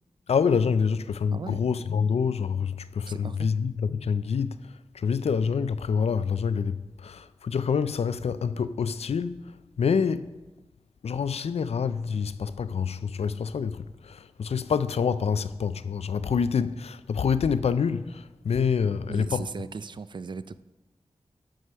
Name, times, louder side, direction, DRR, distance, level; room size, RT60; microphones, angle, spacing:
voice 1, 0.3-10.4 11.0-19.4, left 6 dB, 70° left, 0.4 m, -27 dB
voice 2, 3.0-3.5 19.1-20.6, right 4 dB, 45° right, 0.3 m, -37 dB
13.0 x 4.9 x 5.5 m
wide cardioid pair, 110°, 11 cm